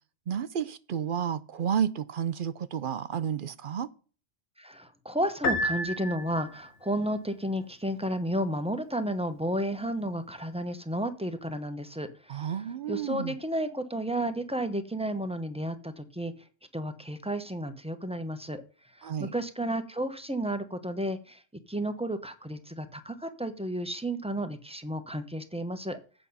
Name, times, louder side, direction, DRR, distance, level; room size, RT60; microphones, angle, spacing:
voice 1, 0.3-3.9 12.3-13.4 19.0-19.3, right 8 dB, 60° right, 0.6 m, -31 dB
voice 2, 4.6-12.5 12.9-16.3 16.7-18.6 18.9-21.4 21.7-26.0, right 1 dB, 5° right, 0.8 m, -32 dB
Piano, 5.4-6.7, left 1 dB, 70° left, 1.3 m, -30 dB
8.4 x 6.3 x 5.4 m
omnidirectional pair, 1.2 m